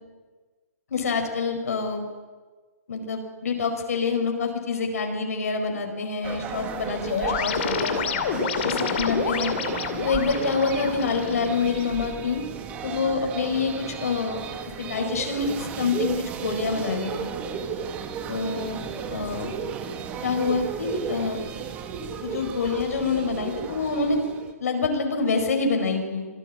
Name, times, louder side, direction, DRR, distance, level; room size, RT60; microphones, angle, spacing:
voice 1, 0.9-2.1 2.9-8.1 8.6-9.5 10.0-12.4 12.8-14.4 14.8-17.4 18.3-18.8 19.1-19.5 20.2-21.4 22.2-24.2 24.6-26.3, left 4 dB, 65° left, 4 dB, 4.9 m, -26 dB
sound 1, 6.2-24.5, right 7 dB, 15° right, 1.4 m, -34 dB
sound 2, 7.1-12.1, left 7 dB, 45° left, 2.6 m, -29 dB
26.0 x 16.5 x 8.6 m, 1.4 s
hypercardioid pair, 160°, 9 cm